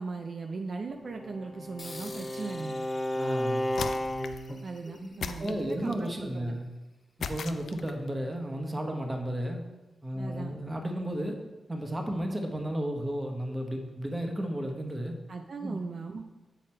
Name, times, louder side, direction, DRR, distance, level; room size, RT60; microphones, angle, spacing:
voice 1, 0.0-2.9 4.6-6.6 10.2-10.5 15.3-16.2, right 4 dB, 50° right, 4 dB, 0.5 m, -38 dB
Bowed string instrument, 1.0-4.6, left 1 dB, 20° left, 0.6 m, -33 dB
sound 1, 1.8-6.7, left 2 dB, 35° left, 1.7 m, -51 dB
voice 2, 3.1-3.7 5.0-5.1 5.4-6.7 7.2-9.6 10.0-11.4 11.7-15.2 15.6-15.8, right 1 dB, 20° right, 3 dB, 1.0 m, -33 dB
sound 2, 3.7-4.5 5.2-6.1 7.2-8.1, left 6 dB, 75° left, 0.4 m, -37 dB
7.7 x 4.9 x 4.4 m, 1.1 s
wide cardioid pair, 110°, 0 cm